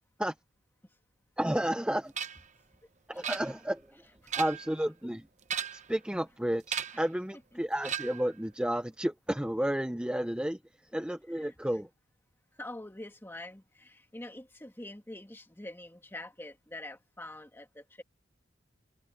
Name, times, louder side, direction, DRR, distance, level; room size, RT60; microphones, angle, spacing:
voice 1, 1.4-2.1 3.1-4.0 4.4-5.2 5.7-10.6 10.9-11.9, right 1 dB, 5° right, 0.6 m, -32 dB
sound 1, 2.2-2.5 3.2-3.8 4.2-4.8 5.4-6.0 6.7-7.1 7.8-8.3, right 8 dB, 40° right, 0.9 m, -36 dB
voice 2, 12.5-18.0, left 1 dB, 10° left, 1.8 m, -45 dB
head